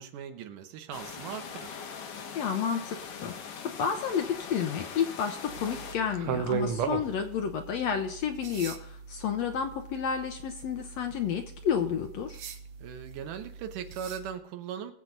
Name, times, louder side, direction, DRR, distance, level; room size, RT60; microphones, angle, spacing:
voice 1, 0.0-1.8 12.8-14.9, right 8 dB, 85° right, 7 dB, 2.6 m, -39 dB
sound 1, 0.9-6.0, left 6 dB, 90° left, 3.2 m, -41 dB
voice 2, 2.3-12.4, left 7 dB, 70° left, 5 dB, 1.7 m, -31 dB
sound 2, 5.5-14.3, right 7 dB, 65° right, 1.4 m, -38 dB
20.5 x 7.6 x 3.9 m, 0.69 s
omnidirectional pair, 3.6 m